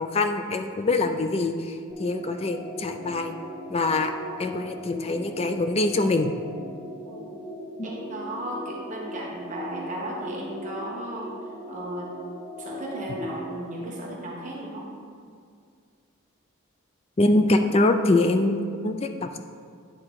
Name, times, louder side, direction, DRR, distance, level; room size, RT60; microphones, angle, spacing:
voice 1, 0.0-3.3 3.7-4.1 4.4-6.3 7.8-7.9 17.2-19.4, left 2 dB, 30° left, 7 dB, 0.4 m, -24 dB
sound 1, 1.9-13.8, equal, 5° right, 1.9 m, -39 dB
voice 2, 7.0-7.4 7.8-11.3 11.7-12.1 12.6-14.9, right 1 dB, 35° right, -4 dB, 1.1 m, -35 dB
9.6 x 3.7 x 4.7 m, 2.2 s
head